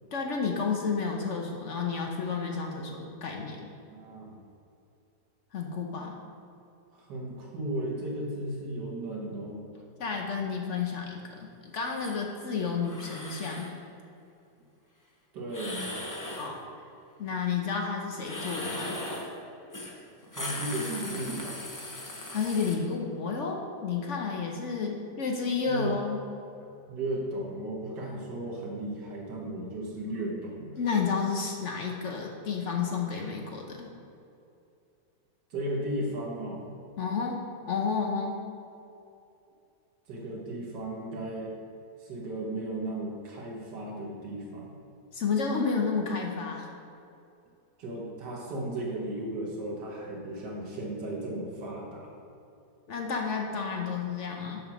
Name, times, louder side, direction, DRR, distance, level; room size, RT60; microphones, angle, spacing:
voice 1, 0.1-3.6 5.5-6.1 10.0-13.7 16.3-16.6 17.2-19.0 22.3-26.2 30.8-33.9 37.0-37.4 37.7-38.4 45.1-46.7 52.9-54.6, left 5 dB, 55° left, 1 dB, 0.9 m, -31 dB
voice 2, 3.9-4.4 6.0-6.1 6.9-9.6 15.3-16.0 20.3-21.6 25.7-25.9 26.9-30.8 35.5-36.8 40.1-41.5 42.0-44.7 47.8-52.1, right 1 dB, 90° right, -3 dB, 1.8 m, -35 dB
sound 1, 11.8-12.2 12.8-13.7 15.5-16.5 18.2-19.3 19.7-19.9 20.2-22.7, left 1 dB, 20° left, 0.4 m, -38 dB
7.4 x 5.5 x 5.9 m, 2.6 s
omnidirectional pair, 1.8 m